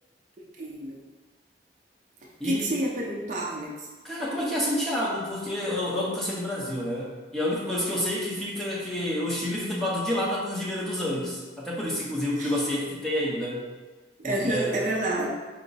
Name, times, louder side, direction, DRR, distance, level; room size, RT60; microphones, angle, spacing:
voice 1, 0.6-1.0 2.4-3.9 12.4-12.5 14.2-15.3, right 1 dB, 45° right, -2 dB, 0.5 m, -29 dB
voice 2, 2.4-2.7 4.0-13.6 14.2-14.8, left 1 dB, 5° left, -6 dB, 0.7 m, -29 dB
4.4 x 2.1 x 3.9 m, 1.3 s
head